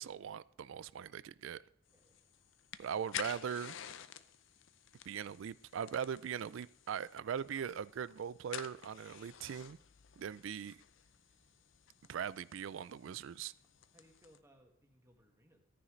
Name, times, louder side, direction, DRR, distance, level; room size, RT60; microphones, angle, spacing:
voice 1, 0.0-1.6 2.8-3.8 5.1-9.8 10.2-10.8 12.1-13.5, right 8 dB, 65° right, 0.3 m, -40 dB
sound 1, 1.9-14.4, left 9 dB, 60° left, 0.5 m, -51 dB
voice 2, 1.9-2.2 13.9-15.6, equal, 15° right, 1.7 m, -65 dB
13.5 x 9.8 x 3.2 m
head